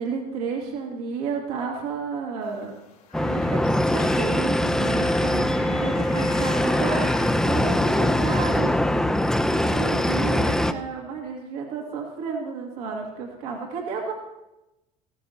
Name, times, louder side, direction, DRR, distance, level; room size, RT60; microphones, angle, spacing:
voice 1, 0.0-2.7 3.1-8.8 9.1-14.1, right 5 dB, 75° right, 0 dB, 2.1 m, -32 dB
sound 1, 2.4-8.4, left 7 dB, 80° left, 2.2 m, -44 dB
sound 2, 3.1-10.7, left 1 dB, 5° left, 0.5 m, -22 dB
14.5 x 13.5 x 2.9 m, 0.95 s
hypercardioid pair, 75°, 19 cm